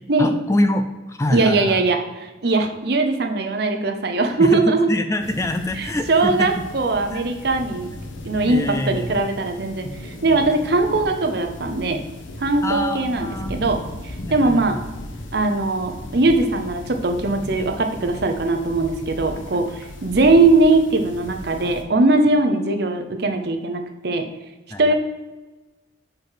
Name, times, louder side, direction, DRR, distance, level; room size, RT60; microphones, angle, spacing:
voice 1, 0.2-1.8 4.4-6.5 7.1-7.3 8.5-9.4 12.6-13.6 14.2-14.8 19.4-19.5 24.7-24.9, left 1 dB, 15° left, 7 dB, 0.3 m, -25 dB
voice 2, 1.3-4.9 5.8-7.9 8.2-12.0 12.4-14.8 15.3-24.2 24.8-24.9, right 2 dB, 55° right, 5 dB, 0.8 m, -20 dB
sound 1, 5.2-21.8, left 1 dB, 80° left, 0.9 m, -37 dB
5.1 x 4.5 x 5.8 m, 1.2 s
head